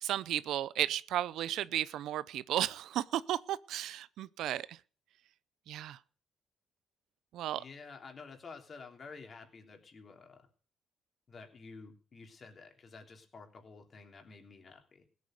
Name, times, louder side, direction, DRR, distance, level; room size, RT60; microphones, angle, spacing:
voice 1, 0.0-4.8 5.7-6.0 7.3-7.6, right 12 dB, 80° right, 0.5 m, -34 dB
voice 2, 7.5-10.5 11.3-15.0, left 4 dB, 40° left, 3.3 m, -51 dB
16.5 x 8.3 x 6.6 m
cardioid pair, 95°, 0 cm